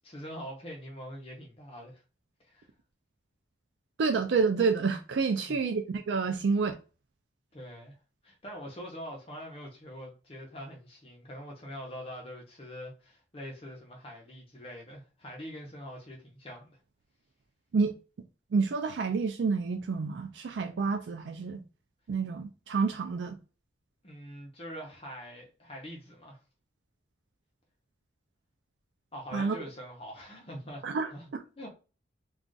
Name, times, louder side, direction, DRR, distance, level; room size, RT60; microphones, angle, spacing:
voice 1, 0.0-2.0 2.4-2.7 5.4-5.6 7.5-8.0 8.2-16.8 24.0-26.4 29.1-30.8 31.1-31.2 31.6-31.7, equal, 30° left, 0.7 m, -44 dB
voice 2, 4.0-6.8 17.7-17.9 18.5-21.6 22.1-23.4 29.3-29.5 30.8-31.4, right 4 dB, 75° right, 0.4 m, -29 dB
2.4 x 2.3 x 3.8 m
head